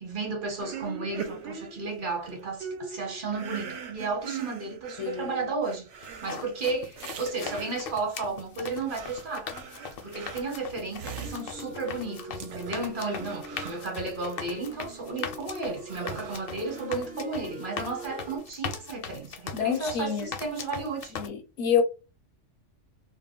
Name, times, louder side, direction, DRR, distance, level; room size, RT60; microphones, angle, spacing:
voice 1, 0.0-9.5 10.0-21.1, right 3 dB, 45° right, 1.0 m, -33 dB
sound 1, 0.6-8.1 8.6-12.1 12.4-14.5 15.0-17.1, right 6 dB, 70° right, 0.8 m, -42 dB
voice 2, 5.0-5.5 19.5-20.3 21.1-21.8, left 7 dB, 80° left, 0.9 m, -28 dB
sound 2, 6.0-21.3, left 6 dB, 60° left, 0.6 m, -40 dB
sound 3, 10.7-18.4, right 1 dB, 15° right, 0.3 m, -44 dB
2.3 x 2.1 x 3.6 m
omnidirectional pair, 1.3 m